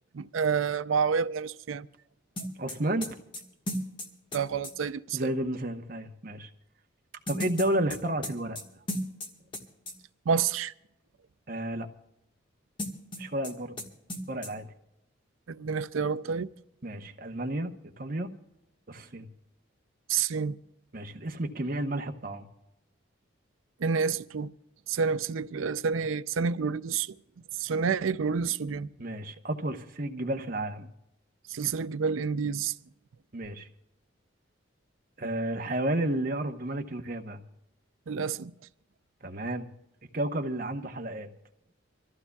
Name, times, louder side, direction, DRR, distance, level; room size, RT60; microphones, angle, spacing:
voice 1, 0.1-1.9 4.3-5.3 10.3-10.7 15.5-16.5 20.1-20.6 23.8-24.5 24.9-27.1 27.6-28.9 31.5-32.7 38.1-38.5, right 6 dB, 90° right, 0.5 m, -29 dB
sound 1, 2.4-4.7 7.3-9.6 9.9-10.0 12.8-13.5 13.8-13.9 14.1-14.5, left 1 dB, 25° left, 1.5 m, -35 dB
voice 2, 2.6-3.2 5.1-6.5 7.3-8.6 11.5-11.9 13.2-13.8 14.3-14.7 16.8-18.3 18.9-19.3 20.9-22.5 29.0-30.9 33.3-33.7 35.2-37.4 39.2-39.7 40.1-41.3, right 1 dB, 45° right, 0.9 m, -32 dB
26.0 x 14.5 x 2.3 m
head